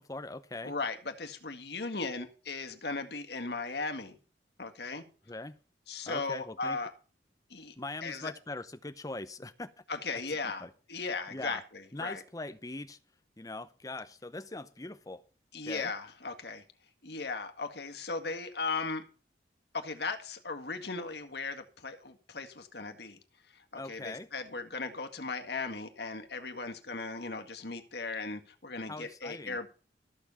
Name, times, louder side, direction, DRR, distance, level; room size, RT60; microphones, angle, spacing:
voice 1, 0.0-0.7 5.3-5.6 6.1-6.8 7.8-9.7 10.6-10.7 11.3-11.6 11.9-13.0 13.4-15.2 15.7-15.9 23.8-24.3 28.9-29.6, left 2 dB, 20° left, 0.8 m, -41 dB
voice 2, 0.6-4.2 4.6-5.0 5.9-6.9 7.5-7.7 8.0-8.3 9.9-12.2 15.5-16.6 17.0-19.0 19.7-23.2 23.5-29.7, left 3 dB, 65° left, 1.9 m, -37 dB
14.0 x 7.2 x 5.5 m
head